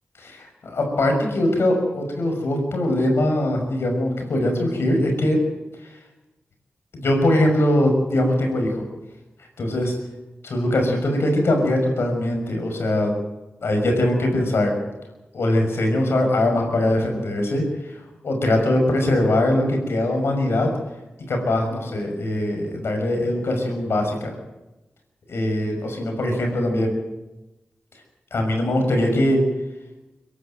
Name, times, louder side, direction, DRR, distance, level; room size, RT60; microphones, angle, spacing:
voice 1, 0.2-5.4 6.9-8.8 9.6-9.9 10.4-13.1 13.6-14.7 15.3-17.6 18.2-20.7 21.3-24.3 25.3-26.9 28.3-29.4, left 1 dB, 75° left, 3 dB, 6.1 m, -21 dB
24.0 x 12.5 x 9.2 m, 1.0 s
cardioid pair, 45°, 4 cm